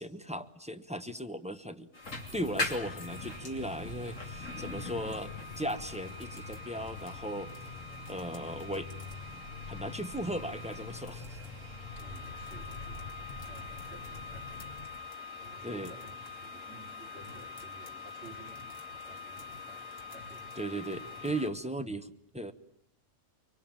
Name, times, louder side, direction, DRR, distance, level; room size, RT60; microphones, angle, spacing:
voice 1, 0.0-7.5 8.1-8.9 9.7-11.4 15.6-15.9 20.6-22.5, right 1 dB, 5° right, 9 dB, 0.9 m, -37 dB
sound 1, 1.9-21.5, left 3 dB, 80° left, 3.1 m, -43 dB
sound 2, 2.0-14.9, left 3 dB, 55° left, 6.7 m, -46 dB
voice 2, 12.0-14.8 15.0-20.7, right 3 dB, 55° right, 1 dB, 3.9 m, -54 dB
24.0 x 23.5 x 8.9 m, 0.72 s
omnidirectional pair, 1.3 m